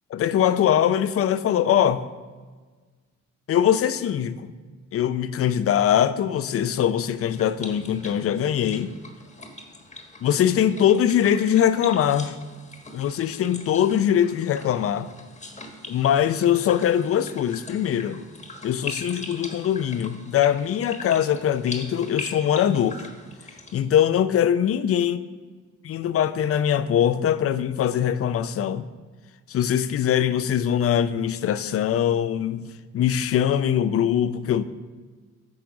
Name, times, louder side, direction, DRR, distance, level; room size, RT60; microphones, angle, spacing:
voice 1, 0.1-2.1 3.5-4.5 4.9-8.9 10.2-12.4 12.9-15.1 15.9-18.2 18.6-23.0 23.7-25.2 25.8-28.9 29.5-34.6, left 9 dB, 50° left, 0.5 m, -22 dB
sound 1, 7.1-23.8, left 2 dB, 25° left, 1.2 m, -41 dB
8.7 x 3.9 x 6.1 m
cardioid pair, 90°, 30 cm